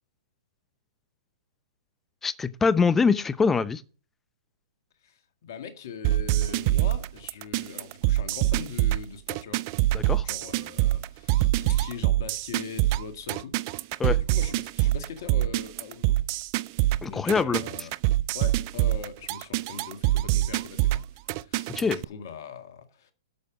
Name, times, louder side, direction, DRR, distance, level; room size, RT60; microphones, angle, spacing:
voice 1, 2.2-3.8 9.9-10.3 14.0-14.2 17.0-17.6 21.7-22.0, left 5 dB, 10° left, 0.7 m, -23 dB
voice 2, 5.0-9.7 10.2-16.2 17.0-17.9 18.3-23.1, left 6 dB, 55° left, 2.0 m, -41 dB
sound 1, 6.0-22.0, right 15 dB, 40° right, 0.5 m, -25 dB
11.5 x 6.6 x 6.1 m
hypercardioid pair, 125°, 2 cm